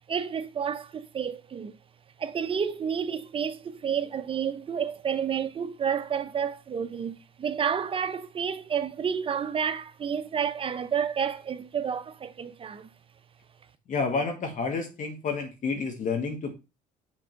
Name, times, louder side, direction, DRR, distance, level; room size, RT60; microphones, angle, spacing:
voice 1, 0.1-1.8 2.2-12.9, right 7 dB, 30° right, 0.7 m, -30 dB
voice 2, 13.9-16.5, left 4 dB, 50° left, 1.5 m, -29 dB
7.6 x 3.6 x 4.5 m
cardioid pair, 110°, 17 cm